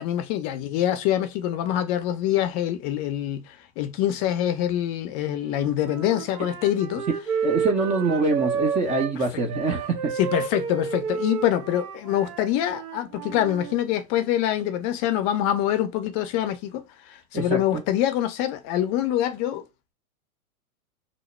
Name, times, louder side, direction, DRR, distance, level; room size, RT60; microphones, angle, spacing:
voice 1, 0.0-7.0 10.2-19.6, left 12 dB, 35° left, 0.5 m, -25 dB
Wind instrument woodwind instrument, 5.3-9.1 9.5-13.7, right 7 dB, 80° right, 0.9 m, -31 dB
voice 2, 7.4-10.1 17.3-17.8, right 3 dB, 15° right, 0.4 m, -24 dB
2.9 x 2.1 x 4.1 m
hypercardioid pair, 110°, 45 cm